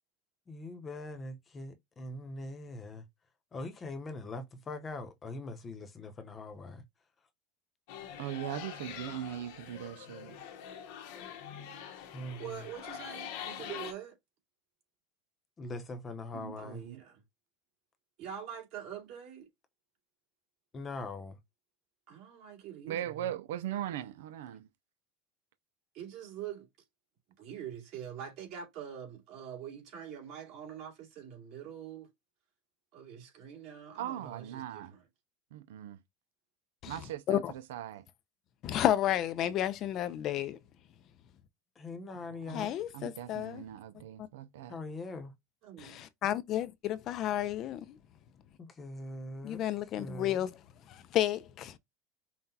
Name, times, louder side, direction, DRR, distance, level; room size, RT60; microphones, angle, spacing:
voice 1, 0.5-3.0 3.5-6.8 12.1-12.6 15.6-16.8 20.7-21.4 41.8-42.7 44.7-45.3 48.8-49.6 50.0-50.4, left 2 dB, 25° left, 0.8 m, -42 dB
sound 1, 7.9-13.9, left 9 dB, 70° left, 1.0 m, -44 dB
voice 2, 8.2-10.4 16.3-17.0 22.9-24.7 34.0-34.9 35.5-36.0 36.9-37.4 37.7-38.0 42.3-42.7 42.9-44.8, right 12 dB, 90° right, 0.4 m, -40 dB
voice 3, 12.1-14.2 16.6-17.2 18.2-19.5 22.1-23.3 25.9-26.7 27.4-32.1 32.9-35.0 45.6-46.0, right 9 dB, 55° right, 2.5 m, -44 dB
voice 4, 38.6-40.6 42.5-43.6 44.2-44.3 45.8-48.0 49.4-50.6 50.9-51.8, left 12 dB, 45° left, 0.5 m, -32 dB
5.7 x 2.3 x 2.7 m
supercardioid pair, 130°, 0 cm